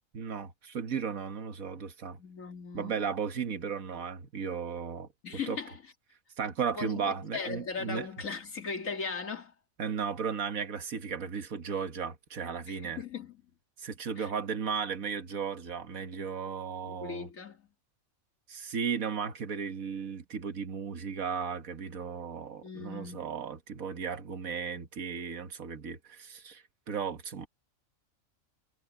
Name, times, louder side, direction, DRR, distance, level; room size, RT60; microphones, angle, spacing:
voice 1, 0.1-2.2 2.7-5.1 5.5-5.6 6.4-8.1 9.8-13.0 13.8-17.3 18.5-27.5, right 6 dB, 85° right, 1.9 m, -35 dB
voice 2, 2.2-3.1 5.2-5.9 6.8-9.5 12.7-13.4 14.2-14.3 16.9-17.7 22.6-23.3, left 5 dB, 75° left, 2.5 m, -38 dB
omnidirectional pair, 1.4 m